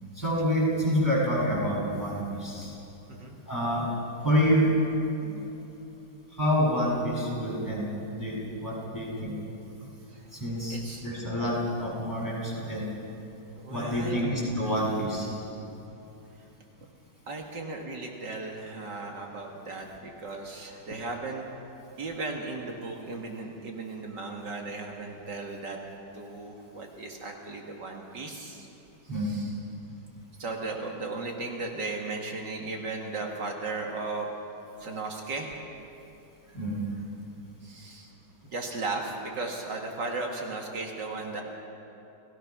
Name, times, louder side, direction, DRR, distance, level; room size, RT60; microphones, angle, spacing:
voice 1, 0.1-2.8 3.5-3.8 4.2-4.7 5.2-5.4 6.3-7.9 8.2-9.4 10.3-12.9 13.7-15.4 29.1-29.4 36.5-36.8, equal, 10° left, -6 dB, 6.9 m, -27 dB
voice 2, 10.7-11.1 13.5-14.2 17.3-21.5 22.0-25.8 26.1-28.7 29.2-29.5 30.4-34.3 34.8-35.5 37.6-38.1 38.4-41.4, right 3 dB, 75° right, 1 dB, 2.6 m, -36 dB
29.5 x 18.0 x 6.1 m, 2.9 s
omnidirectional pair, 1.9 m